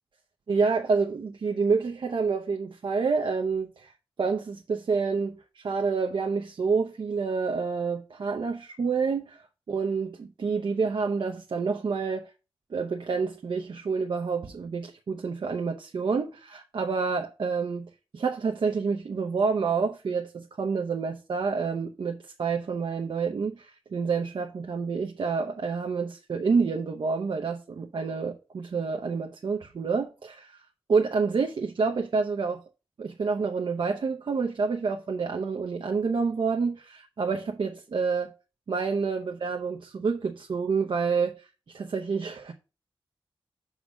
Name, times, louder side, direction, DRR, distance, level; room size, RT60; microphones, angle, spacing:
voice 1, 0.5-3.9 4.2-12.3 12.7-30.6 30.9-32.6 33.0-38.3 38.7-42.5, right 5 dB, 60° right, 0.7 m, -28 dB
6.2 x 4.0 x 6.1 m
wide cardioid pair, 160°, 9 cm